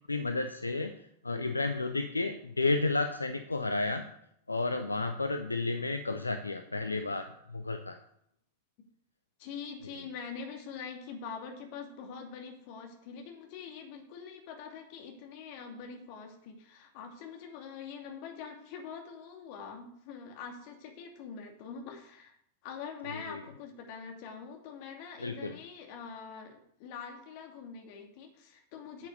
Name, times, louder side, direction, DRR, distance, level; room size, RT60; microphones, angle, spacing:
voice 1, 0.1-0.9 1.2-4.1 4.5-8.0 23.0-23.4 25.2-25.6, left 3 dB, 80° left, 7 dB, 0.7 m, -32 dB
voice 2, 9.4-22.4 22.6-29.1, left 6 dB, 45° left, 3 dB, 2.5 m, -44 dB
9.1 x 8.2 x 6.7 m, 0.70 s
figure-of-eight pair, 90°, 0 cm